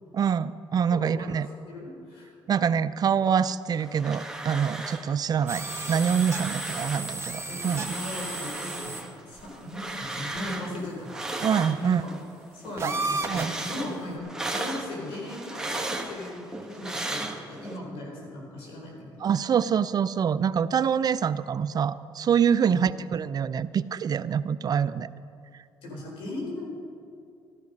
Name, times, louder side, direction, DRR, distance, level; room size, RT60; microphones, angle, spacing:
voice 1, 0.1-1.5 2.5-7.9 11.4-12.0 12.8-12.9 13.3-13.5 19.2-25.1, right 7 dB, 45° right, 15 dB, 0.4 m, -25 dB
voice 2, 0.9-1.3 1.7-2.3 7.5-11.3 11.8-12.1 12.5-19.3 22.6-22.9 25.8-26.7, left 1 dB, 85° left, -1 dB, 4.2 m, -38 dB
sound 1, 3.7-5.1 5.4-7.2 7.5-12.2 12.6-17.8, right 2 dB, 5° right, 1.3 m, -36 dB
sound 2, 5.5-9.0 9.4-9.5 10.4-10.5 12.8-13.6, right 3 dB, 30° right, 1.4 m, -33 dB
14.0 x 12.0 x 5.3 m, 2.5 s
cardioid pair, 85°, 9 cm